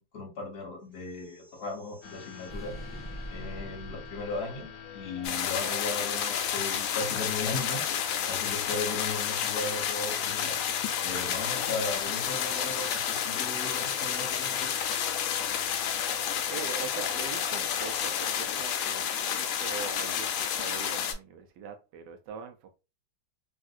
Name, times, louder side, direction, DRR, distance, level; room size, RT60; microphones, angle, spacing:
voice 1, 0.0-2.7 3.0-7.8 8.3-10.6 11.0-14.7, left 3 dB, 50° left, 0.8 m, -37 dB
sound 1, 0.9-5.2, right 1 dB, 10° right, 0.6 m, -45 dB
sound 2, 2.0-18.1, left 5 dB, 70° left, 1.4 m, -46 dB
sound 3, 5.2-21.1, left 9 dB, 85° left, 1.4 m, -30 dB
voice 2, 16.1-22.8, right 7 dB, 75° right, 1.1 m, -42 dB
3.6 x 2.5 x 2.4 m
omnidirectional pair, 2.2 m